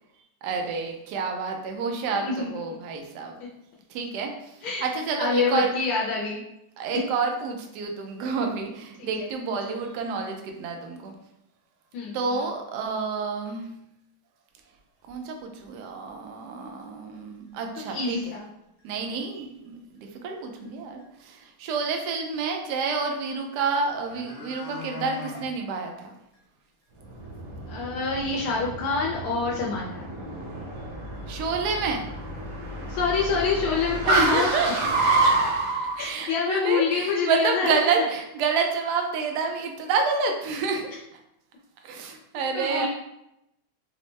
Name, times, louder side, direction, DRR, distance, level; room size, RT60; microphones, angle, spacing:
voice 1, 0.4-3.4 3.9-5.7 6.8-11.1 12.1-13.7 15.1-18.3 18.8-26.1 31.3-32.1 34.1-35.4 35.7-40.9 41.8-42.9, right 4 dB, 80° right, 3 dB, 0.9 m, -29 dB
voice 2, 5.2-6.4 9.0-9.3 11.9-12.4 17.9-18.5 27.7-30.0 32.9-34.5 36.0-37.8 42.5-42.9, left 5 dB, 80° left, -4 dB, 1.4 m, -27 dB
sound 1, 15.0-15.1 15.6-15.7 16.1-16.2 17.1-17.2 17.8-18.1 18.3-18.4 18.8-19.2 20.6-20.7 21.0-21.1 23.4-23.5 23.8-25.5 25.9-26.0 26.3-26.4 26.8-26.9 27.2-27.3 30.1-30.2 30.6-30.7 31.5-31.6 32.0-32.2 32.5-33.3 33.6-33.7, left 4 dB, 45° left, 0.8 m, -42 dB
Car, 27.0-35.9, right 2 dB, 60° right, 1.2 m, -28 dB
4.4 x 2.1 x 3.1 m, 0.83 s
omnidirectional pair, 2.3 m